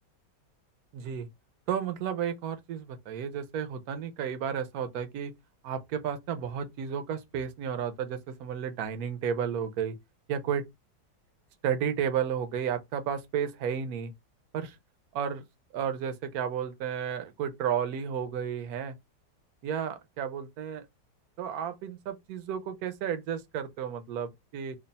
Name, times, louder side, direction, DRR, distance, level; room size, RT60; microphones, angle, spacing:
voice 1, 0.9-1.3 1.7-5.3 5.6-9.9 10.3-10.6 11.6-14.1 14.5-14.8 15.1-15.4 15.7-18.9 19.6-20.9 21.4-24.8, right 8 dB, 70° right, 1.0 m, -32 dB
3.2 x 2.4 x 4.0 m
omnidirectional pair, 1.9 m